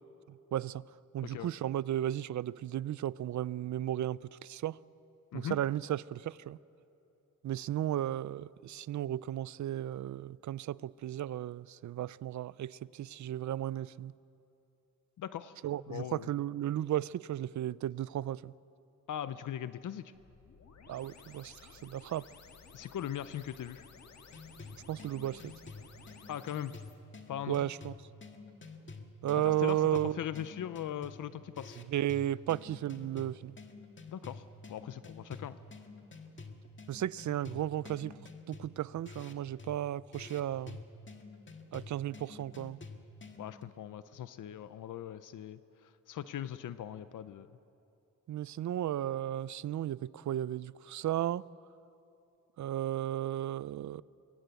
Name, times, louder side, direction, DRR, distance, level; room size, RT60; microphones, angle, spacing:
voice 1, 0.3-0.8 1.1-4.8 5.3-6.6 7.4-14.1 15.6-18.5 20.9-22.2 24.9-25.5 27.5-27.9 29.2-30.2 31.9-33.5 36.9-40.8 41.7-42.8 48.3-51.4 52.6-54.0, right 12 dB, 70° right, 0.5 m, -34 dB
voice 2, 15.2-15.5 15.9-16.3 19.1-20.1 22.7-23.9 26.3-26.7 27.3-27.6 29.4-29.8 30.2-31.8 34.1-34.4 34.7-35.6 43.4-47.5, left 10 dB, 80° left, 0.7 m, -40 dB
sound 1, 20.1-26.9, left 5 dB, 60° left, 1.9 m, -56 dB
sound 2, 24.3-43.6, left 4 dB, 40° left, 1.9 m, -49 dB
26.0 x 22.5 x 8.2 m
wide cardioid pair, 115°, 31 cm